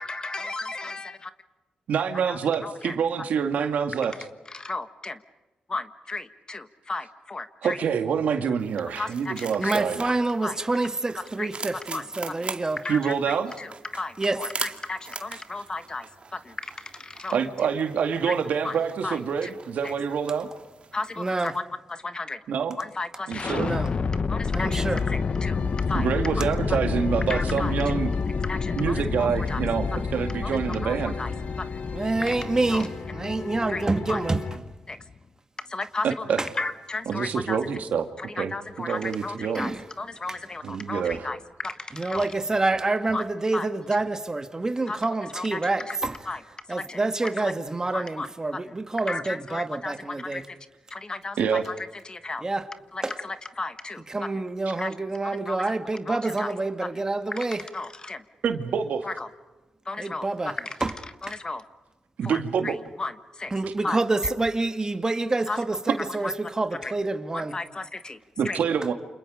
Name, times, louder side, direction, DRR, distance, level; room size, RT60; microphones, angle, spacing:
voice 1, 0.0-1.3 2.3-2.9 4.5-5.2 5.7-7.8 9.0-10.1 10.4-10.6 11.4-11.5 11.9-12.5 12.8-17.4 18.2-18.3 18.6-18.8 19.0-19.5 19.8-19.9 20.9-21.6 21.9-22.4 22.8-23.6 24.3-25.6 25.9-26.1 26.3-26.5 27.3-27.8 28.4-29.6 30.4-31.3 31.6-31.8 32.3-32.4 32.7-32.9 33.7-34.2 34.9-35.0 35.7-36.3 36.6-37.6 38.2-42.3 43.1-43.2 43.5-43.7 44.9-45.0 45.3-46.0 46.2-46.4 46.7-47.5 47.9-48.3 48.5-48.7 49.1-50.6 50.9-52.4 52.9-54.3 54.8-54.9 55.4-55.6 56.1-56.5 56.9-57.0 57.3-57.5 57.7-58.2 59.0-59.3 59.8-60.8 61.2-61.6 62.2-63.5 63.8-64.0 65.5-65.6 66.2-66.3 66.8-66.9 67.3-68.2 68.4-68.6, left 3 dB, 30° left, 1.4 m, -34 dB
voice 2, 1.9-4.1 7.6-10.1 12.9-13.5 17.3-20.5 22.5-22.8 23.3-23.7 25.9-28.1 28.7-31.2 36.0-36.4 37.1-38.1 38.3-38.5 38.8-39.6 40.6-41.3 51.4-51.6 54.7-54.8 58.4-59.1 62.2-62.7 68.4-68.9, right 7 dB, 85° right, 2.1 m, -26 dB
sound 1, 8.6-21.5, right 5 dB, 50° right, 2.2 m, -42 dB
voice 3, 9.6-12.8 14.2-14.4 21.2-21.5 23.6-23.9 24.5-25.0 31.9-34.4 36.4-36.5 39.5-39.8 40.3-40.4 41.9-46.2 46.7-50.5 52.4-52.7 53.0-53.1 54.1-57.7 60.0-60.6 60.8-60.9 63.5-67.6, right 2 dB, 25° right, 1.9 m, -27 dB
sound 2, 23.3-35.2, left 5 dB, 45° left, 0.8 m, -29 dB
sound 3, 24.7-34.6, left 4 dB, 65° left, 2.6 m, -37 dB
29.5 x 27.5 x 5.1 m
cardioid pair, 85°, 3 cm